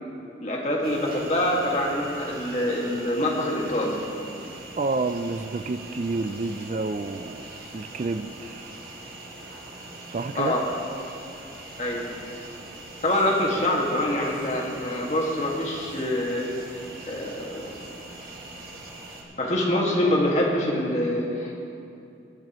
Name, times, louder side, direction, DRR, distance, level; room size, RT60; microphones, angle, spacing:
voice 1, 0.4-4.0 4.8-4.9 10.4-10.7 11.8-12.0 13.0-16.5 17.1-17.7 19.4-21.8, left 1 dB, 40° left, -2 dB, 1.9 m, -25 dB
sound 1, 0.8-19.2, right 2 dB, 60° right, 1.9 m, -42 dB
voice 2, 4.8-7.5 7.7-8.7 10.1-10.5, right 3 dB, 40° right, 10 dB, 0.3 m, -29 dB
21.0 x 10.5 x 3.1 m, 2.6 s
head